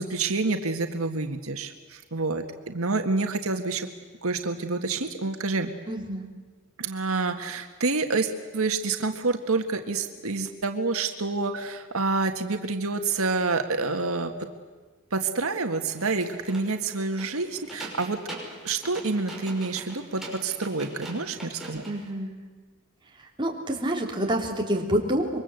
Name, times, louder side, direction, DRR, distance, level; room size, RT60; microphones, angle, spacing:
voice 1, 0.0-3.9 4.2-5.7 6.8-14.3 15.1-18.2 18.6-21.8, right 3 dB, 90° right, 6 dB, 1.7 m, -28 dB
voice 2, 5.9-6.3 21.9-22.4 23.4-25.4, right 1 dB, 20° right, 0 dB, 3.7 m, -27 dB
sound 1, 15.9-22.1, right 2 dB, ahead, 5.9 m, -43 dB
26.5 x 23.0 x 8.1 m, 1.4 s
head